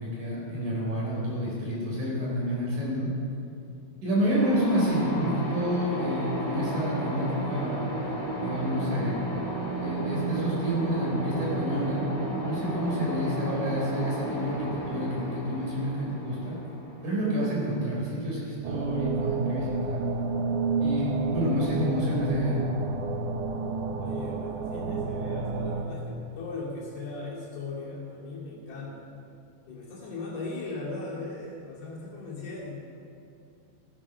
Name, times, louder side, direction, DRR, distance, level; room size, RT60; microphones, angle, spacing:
voice 1, 0.0-3.1 4.0-7.9 8.4-9.4 9.8-12.0 12.4-16.5 17.0-20.0 20.8-22.6, equal, 50° right, -5 dB, 5.2 m, -29 dB
sound 1, 4.2-17.9, right 2 dB, 20° right, 2.7 m, -33 dB
sound 2, 18.6-25.8, right 3 dB, 85° right, 1.7 m, -30 dB
voice 2, 24.0-29.2 29.7-32.8, left 3 dB, 65° left, -5 dB, 4.3 m, -38 dB
16.5 x 9.1 x 6.1 m, 2.5 s
omnidirectional pair, 4.9 m